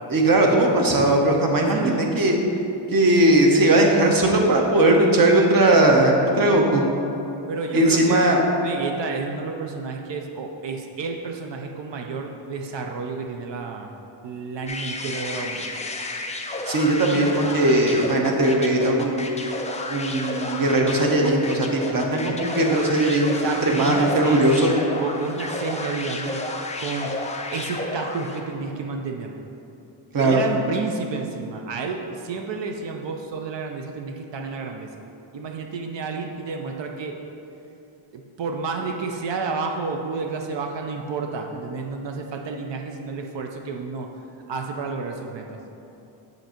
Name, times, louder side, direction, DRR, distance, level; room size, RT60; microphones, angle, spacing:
voice 1, 0.1-2.4 2.9-6.9 7.7-8.4 16.7-19.3 19.9-24.7 30.1-30.4, right 1 dB, 45° right, 1 dB, 0.9 m, -19 dB
voice 2, 7.5-13.9 14.2-15.7 23.2-24.4 24.9-26.4 26.8-29.3 30.2-34.9 35.3-37.2 38.1-44.1 44.5-45.6, right 4 dB, 65° right, 3 dB, 0.6 m, -30 dB
sound 1, 14.7-28.5, left 2 dB, 15° left, 0.3 m, -31 dB
7.6 x 2.6 x 5.7 m, 2.9 s
wide cardioid pair, 115°, 47 cm